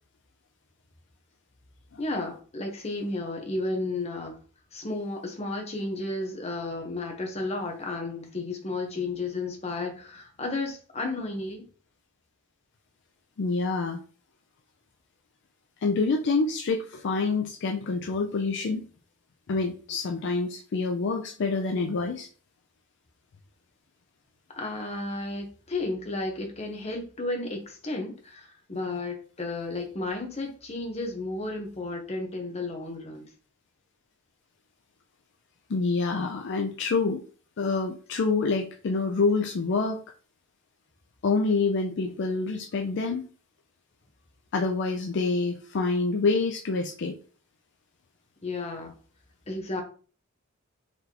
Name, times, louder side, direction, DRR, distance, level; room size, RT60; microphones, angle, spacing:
voice 1, 2.0-4.4 4.7-11.7 24.5-33.3 48.4-48.9 49.5-49.8, left 2 dB, 30° left, 2 dB, 0.9 m, -33 dB
voice 2, 13.4-14.0 15.8-18.9 19.5-22.3 35.7-37.2 37.6-40.0 41.2-43.3 44.5-47.2, left 4 dB, 55° left, 4 dB, 0.4 m, -27 dB
4.1 x 3.3 x 2.9 m, 0.39 s
head